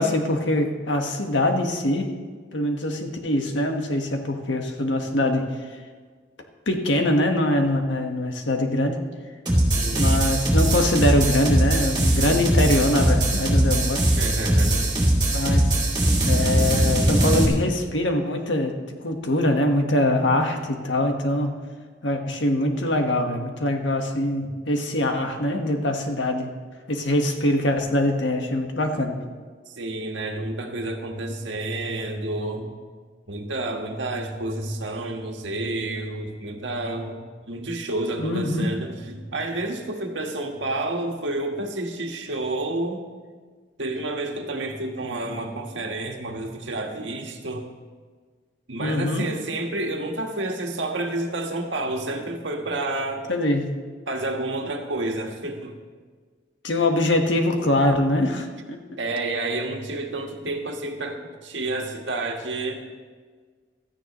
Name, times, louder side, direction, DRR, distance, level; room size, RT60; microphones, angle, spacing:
voice 1, 0.0-2.1 2.5-5.5 6.7-9.0 9.9-14.0 15.3-15.7 16.2-18.7 19.0-21.5 22.0-26.5 26.9-29.1 38.2-38.7 48.8-49.3 53.3-53.7 56.6-58.8, left 1 dB, 90° left, 4 dB, 1.5 m, -23 dB
sound 1, 9.5-17.5, right 1 dB, 25° right, 2.6 m, -21 dB
voice 2, 9.7-10.2 12.1-12.4 14.2-14.9 29.7-32.7 33.3-43.0 43.8-47.6 48.7-53.3 54.1-55.7 59.0-62.8, right 2 dB, 85° right, 3 dB, 1.5 m, -30 dB
16.0 x 13.5 x 3.1 m, 1.5 s
head